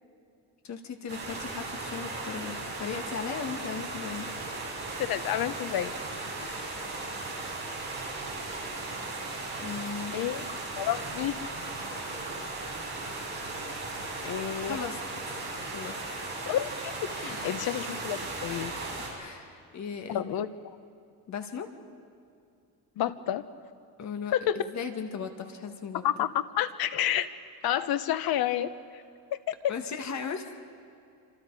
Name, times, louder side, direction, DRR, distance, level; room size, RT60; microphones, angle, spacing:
voice 1, 0.6-4.3 6.4-6.8 8.4-8.5 9.6-10.2 14.7-15.0 15.3-16.0 16.2-16.3 17.2-17.6 19.2-20.5 21.3-21.7 24.0-26.0 29.7-30.6, left 6 dB, 40° left, 6 dB, 2.0 m, -37 dB
sound 1, 1.1-19.1, right 2 dB, 25° right, 6.8 m, -37 dB
voice 2, 5.0-5.9 10.1-10.5 10.8-11.4 14.2-14.8 16.5-18.7 20.1-20.5 23.0-23.4 24.3-24.6 26.0-27.3 27.6-29.0 29.3-29.4 29.6-29.7, left 11 dB, 60° left, 12 dB, 1.1 m, -29 dB
26.5 x 26.0 x 4.9 m, 2.5 s
cardioid pair, 150°, 41 cm